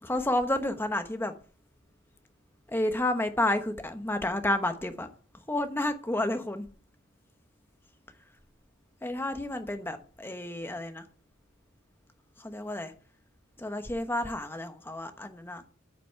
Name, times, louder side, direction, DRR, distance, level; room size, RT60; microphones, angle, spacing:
voice 1, 0.0-1.3 2.7-6.7 9.0-11.1 12.4-12.9 13.6-15.6, left 1 dB, 10° left, 1.0 m, -30 dB
9.1 x 6.0 x 6.8 m
head